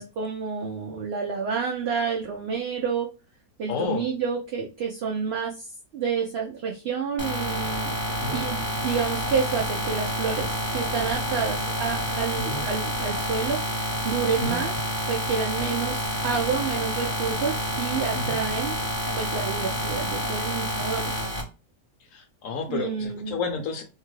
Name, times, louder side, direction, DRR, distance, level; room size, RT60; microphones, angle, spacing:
voice 1, 0.0-3.1 3.6-5.7 5.9-7.9 8.3-13.6 14.0-14.7 15.1-18.7 19.2-21.1 22.7-23.4, right 6 dB, 75° right, 0 dB, 0.5 m, -29 dB
voice 2, 3.7-4.0 8.2-8.4 12.4-12.7 14.4-14.6 18.1-18.4 22.1-23.8, left 4 dB, 70° left, 4 dB, 0.9 m, -31 dB
sound 1, 7.2-21.4, equal, 10° left, 0.8 m, -28 dB
2.8 x 2.3 x 3.0 m, 0.32 s
omnidirectional pair, 1.6 m